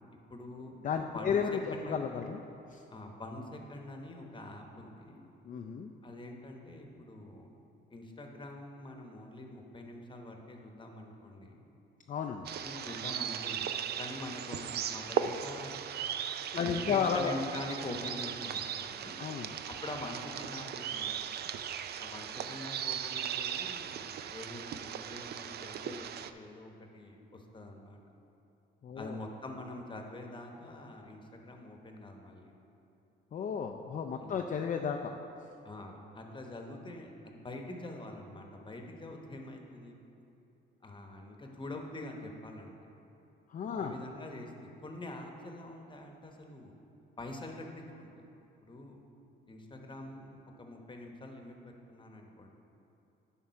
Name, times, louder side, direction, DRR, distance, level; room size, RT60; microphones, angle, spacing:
voice 1, 0.3-0.7 1.1-1.4 1.7-2.1 2.9-5.2 6.0-7.5 7.9-11.6 12.6-13.7 14.0-15.8 16.6-19.2 19.7-21.1 21.4-21.5 22.0-26.1 26.3-28.0 28.9-32.5 34.2-34.4 35.6-40.0 40.8-42.7 43.7-46.7 47.2-48.1 48.6-49.0 49.5-52.5, left 1 dB, 25° left, 2 dB, 1.0 m, -45 dB
voice 2, 0.8-2.4 2.7-2.8 5.4-5.9 12.1-12.5 16.5-17.3 19.2-19.5 28.8-29.2 33.3-35.1 43.5-43.9, left 6 dB, 40° left, 4 dB, 0.4 m, -33 dB
sound 1, 12.4-26.3, right 8 dB, 55° right, 0.4 m, -38 dB
10.5 x 3.7 x 5.7 m, 2.8 s
cardioid pair, 90°, 20 cm